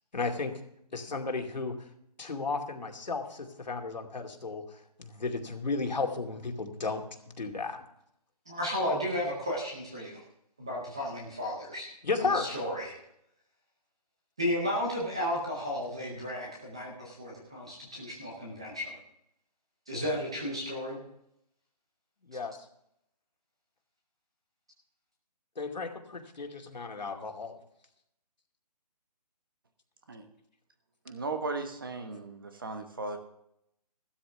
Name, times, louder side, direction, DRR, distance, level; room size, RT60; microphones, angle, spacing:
voice 1, 0.1-0.6 0.9-1.8 2.2-7.0 7.4-7.9 12.0-12.5 22.2-22.6 25.6-27.6, left 4 dB, 90° left, 2 dB, 2.5 m, -34 dB
voice 2, 8.5-10.2 10.6-11.9 12.2-12.9 14.4-18.9 19.9-21.0, left 1 dB, 5° right, -3 dB, 0.6 m, -33 dB
voice 3, 31.0-33.2, right 3 dB, 30° right, 6 dB, 1.3 m, -36 dB
15.5 x 12.5 x 3.4 m, 0.76 s
hypercardioid pair, 180°, 21 cm